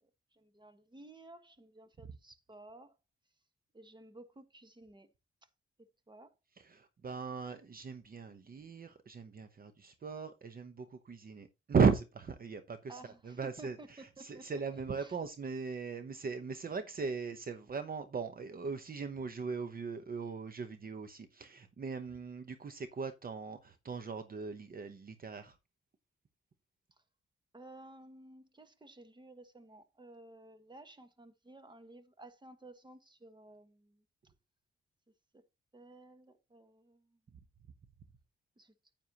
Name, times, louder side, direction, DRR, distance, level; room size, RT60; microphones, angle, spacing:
voice 1, 0.0-2.9 3.7-5.1 5.8-6.3 12.9-14.5 15.0-15.2 27.5-34.0 35.3-35.4 35.7-37.2 38.6-38.7, right 2 dB, 20° right, 1.4 m, -55 dB
voice 2, 6.6-25.5, right 5 dB, 45° right, 0.9 m, -37 dB
9.6 x 9.0 x 2.9 m
cardioid pair, 95°, 21 cm